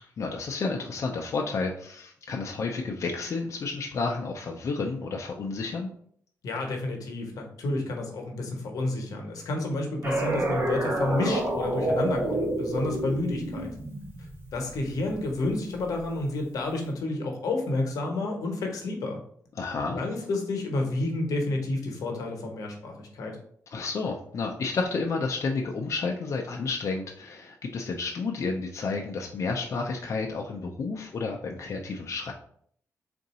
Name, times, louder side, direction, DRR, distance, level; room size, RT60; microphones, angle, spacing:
voice 1, 0.2-5.9 19.6-20.0 23.7-32.3, left 4 dB, 55° left, 1 dB, 0.5 m, -31 dB
voice 2, 6.4-13.7 14.5-19.2 19.9-23.4, left 2 dB, 85° left, 2 dB, 0.9 m, -30 dB
sound 1, 10.0-15.3, right 1 dB, 35° right, 1.1 m, -29 dB
3.8 x 2.6 x 4.1 m, 0.63 s
cardioid pair, 90°, 6 cm